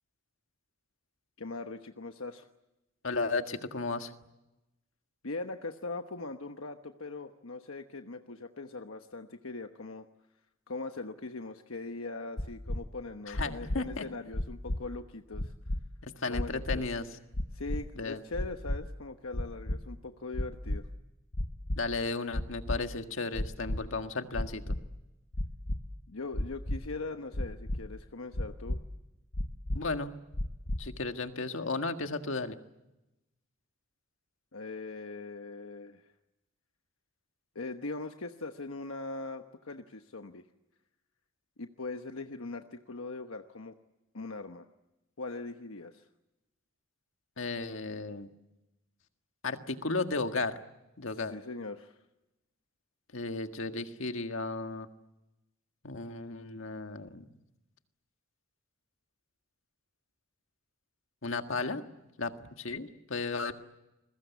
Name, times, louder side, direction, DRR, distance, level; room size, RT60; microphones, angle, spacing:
voice 1, 1.4-2.5 5.2-10.0 10.7-15.5 16.3-16.8 17.5-20.9 26.1-28.8 34.5-36.1 37.5-40.5 41.6-43.7 44.1-44.7 45.2-46.0 51.1-52.0, left 3 dB, 85° left, 6 dB, 1.2 m, -41 dB
voice 2, 3.0-4.1 13.3-14.1 16.0-17.1 18.0-18.2 21.8-24.7 29.7-30.1 30.8-32.6 47.4-48.3 49.4-50.6 51.0-51.3 53.1-54.9 55.8-57.2 61.2-61.8 62.2-63.5, left 3 dB, 70° left, 7 dB, 1.7 m, -34 dB
sound 1, 12.4-12.8 13.3-13.8 14.3-14.8 15.3-15.8 16.3-16.8 17.3-17.8 18.3-18.8 19.3-19.8 20.3-20.8 21.3-21.8 22.3-22.8 23.3-23.8 24.3-24.8 25.3-25.8 26.3-26.8 27.3-27.8 28.3-28.8 29.3-29.8 30.3-30.8, left 1 dB, 55° left, 1.4 m, -32 dB
29.0 x 22.0 x 8.3 m, 0.97 s
head